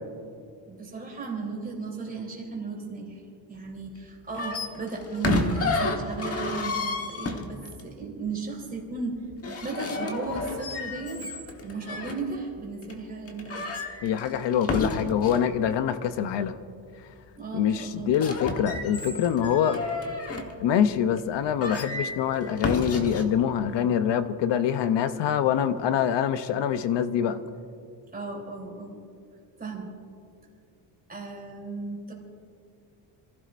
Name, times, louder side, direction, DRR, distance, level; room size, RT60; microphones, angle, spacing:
voice 1, 0.7-3.2 3.5-9.2 9.6-11.2 11.6-13.6 17.4-18.1 28.1-28.9 29.6-29.9 31.1-32.1, right 4 dB, 20° right, -2 dB, 3.4 m, -35 dB
sound 1, 4.3-7.8 9.3-12.2 12.8-12.9 13.3-15.5 18.0-20.5 21.2-21.3 21.6-23.2, left 3 dB, 30° left, 1.3 m, -31 dB
voice 2, 14.0-16.6 17.5-19.8 20.6-27.4, left 9 dB, 65° left, 11 dB, 0.8 m, -25 dB
28.0 x 15.5 x 2.6 m, 2.4 s
cardioid pair, 170°, 47 cm